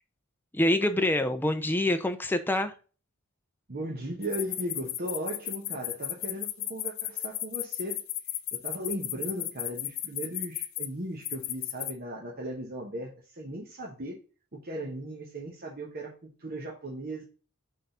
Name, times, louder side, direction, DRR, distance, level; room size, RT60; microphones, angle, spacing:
voice 1, 0.5-2.7, left 1 dB, 10° left, 7 dB, 0.6 m, -26 dB
voice 2, 3.7-8.0 8.5-14.2 14.5-17.2, right 1 dB, 45° right, -2 dB, 1.1 m, -37 dB
sound 1, 4.2-10.9 11.2-11.9, left 14 dB, 60° left, 0.6 m, -34 dB
5.7 x 3.8 x 5.6 m, 0.36 s
head